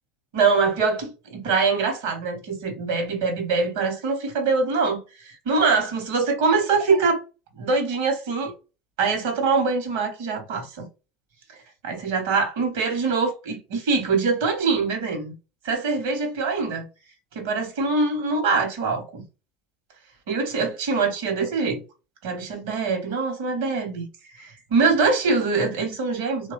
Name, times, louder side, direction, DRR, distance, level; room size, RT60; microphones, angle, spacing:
voice 1, 0.3-7.2 7.6-8.5 9.0-10.9 11.8-15.3 15.6-16.8 17.3-19.2 20.3-21.8 22.2-24.1 24.3-26.5, right 4 dB, 70° right, 0.9 m, -23 dB
3.0 x 2.2 x 2.4 m
hypercardioid pair, 75°, 0 cm